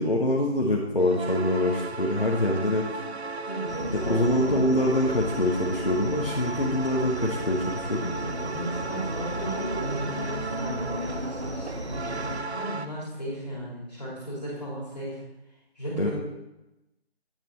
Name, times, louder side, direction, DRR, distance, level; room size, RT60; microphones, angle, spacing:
voice 1, 0.0-3.0 3.9-8.2 16.0-16.1, left 1 dB, 55° left, -2 dB, 1.1 m, -25 dB
sound 1, 1.0-12.9, right 3 dB, 75° right, 0.6 m, -36 dB
voice 2, 3.4-4.7 8.2-15.2 15.8-16.1, right 1 dB, 40° left, -6 dB, 3.0 m, -35 dB
sound 2, 3.7-12.4, equal, 40° right, 0.8 m, -35 dB
8.6 x 6.3 x 4.1 m, 0.94 s
figure-of-eight pair, 175°, 32 cm